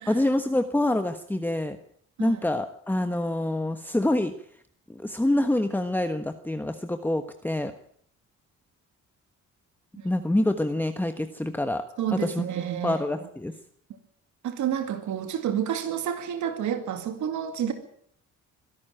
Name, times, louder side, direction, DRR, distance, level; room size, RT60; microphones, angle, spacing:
voice 1, 0.1-1.8 2.2-4.3 4.9-7.7 10.0-11.8 12.1-12.4 12.8-13.5, left 1 dB, 5° left, 1.3 m, -26 dB
voice 2, 12.0-13.0 14.4-17.7, right 9 dB, 75° right, 2.3 m, -29 dB
23.5 x 12.0 x 9.1 m
cardioid pair, 90°, 30 cm